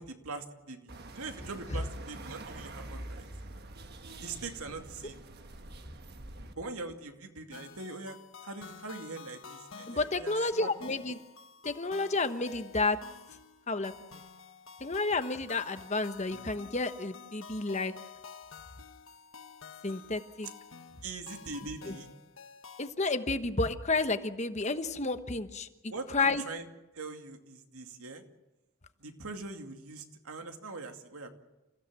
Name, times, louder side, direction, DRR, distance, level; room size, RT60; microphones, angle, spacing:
voice 1, 0.0-3.2 4.2-5.2 6.5-8.2 8.4-10.7 21.0-22.1 25.9-26.7 26.9-28.2 29.0-31.3, right 3 dB, 80° right, 5 dB, 2.5 m, -42 dB
sound 1, 0.9-6.5, right 2 dB, 45° right, 1.5 m, -46 dB
sound 2, 7.5-22.9, left 6 dB, 65° left, 1.2 m, -50 dB
voice 2, 9.9-11.2 11.6-13.0 13.7-13.9 14.8-17.9 19.8-20.5 21.9-22.0 22.8-25.7 26.1-26.4, left 3 dB, 30° left, 9 dB, 1.1 m, -31 dB
29.0 x 16.0 x 7.6 m, 1.0 s
head